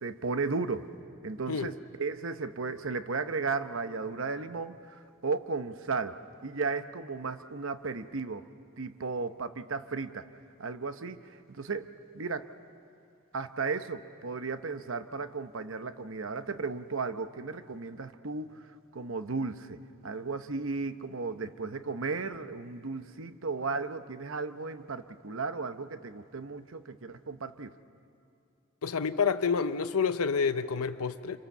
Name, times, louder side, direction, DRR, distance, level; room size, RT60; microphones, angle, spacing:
voice 1, 0.0-0.9 1.2-6.2 6.4-8.4 8.8-10.3 10.6-11.2 11.6-12.5 13.3-18.6 18.9-27.7, right 4 dB, 65° right, 10 dB, 0.8 m, -35 dB
voice 2, 28.8-31.4, left 5 dB, 85° left, 10 dB, 0.6 m, -28 dB
27.0 x 24.5 x 7.2 m, 2.6 s
head